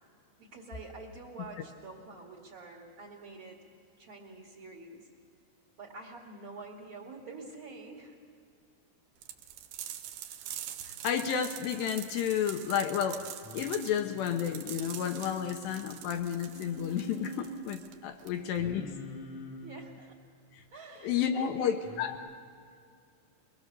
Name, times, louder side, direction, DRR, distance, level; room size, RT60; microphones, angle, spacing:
voice 1, 0.4-3.6 4.0-5.1 5.8-8.2 18.2-18.3 19.6-20.2 20.7-21.7, right 3 dB, 45° right, -1 dB, 1.8 m, -47 dB
sound 1, 9.2-18.6, right 11 dB, 75° right, 2.4 m, -44 dB
voice 2, 10.9-13.3 13.5-18.9 20.5-20.6 21.0-22.2, left 8 dB, 75° left, 6 dB, 2.7 m, -31 dB
Singing, 13.4-15.9 16.5-17.7 18.6-19.9 21.8-22.2, left 1 dB, 55° left, 1.9 m, -46 dB
23.0 x 21.5 x 6.8 m, 2.4 s
omnidirectional pair, 5.6 m